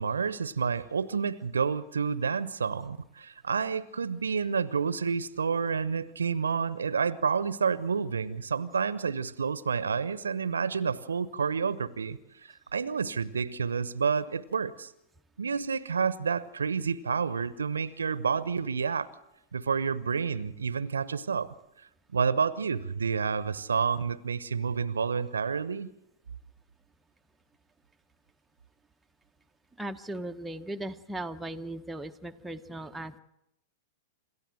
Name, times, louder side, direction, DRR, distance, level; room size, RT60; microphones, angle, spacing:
voice 1, 0.0-14.9 15.4-19.1 19.5-21.5 22.1-25.9, right 6 dB, 75° right, 18 dB, 0.9 m, -29 dB
voice 2, 29.8-33.2, right 1 dB, 5° right, 5 dB, 0.9 m, -38 dB
27.5 x 13.5 x 7.8 m, 0.88 s
figure-of-eight pair, 100°, 0 cm